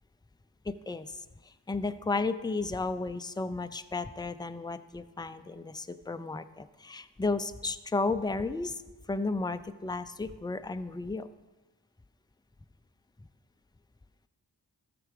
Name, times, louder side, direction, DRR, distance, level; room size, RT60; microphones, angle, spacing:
voice 1, 0.6-8.8 9.1-11.3, left 3 dB, 10° left, 10 dB, 0.5 m, -33 dB
13.5 x 6.9 x 4.8 m, 1.2 s
cardioid pair, 55°, 43 cm